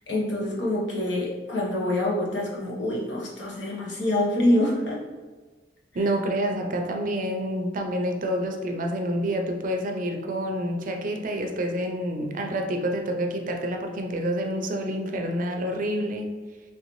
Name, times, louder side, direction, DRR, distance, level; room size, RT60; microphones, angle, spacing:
voice 1, 0.0-5.0, left 1 dB, 85° left, -4 dB, 1.0 m, -26 dB
voice 2, 5.9-16.3, equal, 50° right, 3 dB, 0.4 m, -28 dB
3.2 x 2.7 x 3.0 m, 1.4 s
head